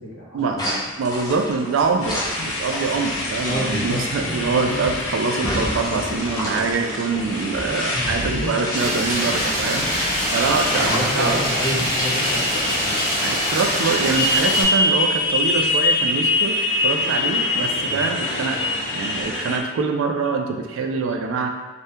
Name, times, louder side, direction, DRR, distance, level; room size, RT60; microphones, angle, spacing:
voice 1, 0.1-0.7 3.4-4.4 7.6-8.5 10.8-13.1 17.8-18.0, equal, 70° left, -5 dB, 0.9 m, -29 dB
sound 1, 0.6-12.3, equal, 20° left, 0.5 m, -31 dB
voice 2, 1.0-11.4 13.2-16.6 16.8-18.6 18.9-21.5, right 4 dB, 80° right, 4 dB, 0.3 m, -24 dB
Motorcycle, 2.0-19.6, left 2 dB, 90° left, 0.6 m, -25 dB
sound 2, 8.7-14.6, equal, 35° right, 1.4 m, -25 dB
2.7 x 2.1 x 3.3 m, 1.2 s
head